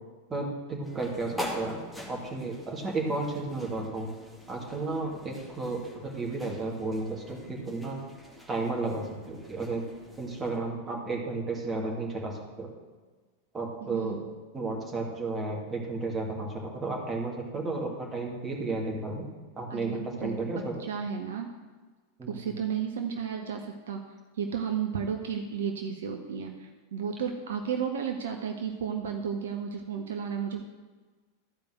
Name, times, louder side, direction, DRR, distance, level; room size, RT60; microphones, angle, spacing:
voice 1, 0.3-1.8 2.1-4.1 4.5-8.0 8.5-9.9 10.2-12.7 13.5-14.2 14.5-19.3 19.6-20.8 22.2-22.3, right 3 dB, 15° right, -1 dB, 2.4 m, -33 dB
sound 1, 0.8-10.6, equal, ahead, 2.0 m, -44 dB
voice 2, 13.8-14.2 19.7-20.5 20.8-21.5 22.3-24.0 24.3-30.7, right 7 dB, 60° right, 4 dB, 0.8 m, -33 dB
13.0 x 5.2 x 7.8 m, 1.4 s
figure-of-eight pair, 90°, 0 cm